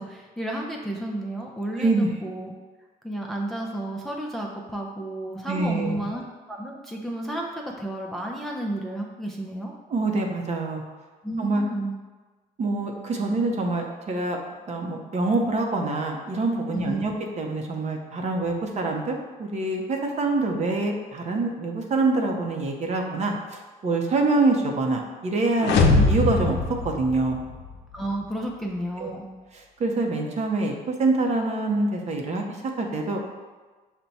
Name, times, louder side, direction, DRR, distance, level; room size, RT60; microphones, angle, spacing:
voice 1, 0.0-2.5 3.0-6.2 6.5-7.5 7.8-9.7 11.2-11.9 16.7-17.0 25.9-26.0 27.9-29.3, right 1 dB, ahead, -1 dB, 0.5 m, -31 dB
voice 2, 1.8-2.1 5.5-6.1 9.9-10.8 11.4-11.6 12.6-14.4 14.7-26.6 26.8-27.4 29.0-29.1 29.5-33.3, right 3 dB, 40° right, 2 dB, 0.7 m, -25 dB
sound 1, 25.6-27.7, left 3 dB, 80° left, 0.5 m, -22 dB
5.7 x 2.2 x 4.0 m, 1.3 s
cardioid pair, 110°, 17 cm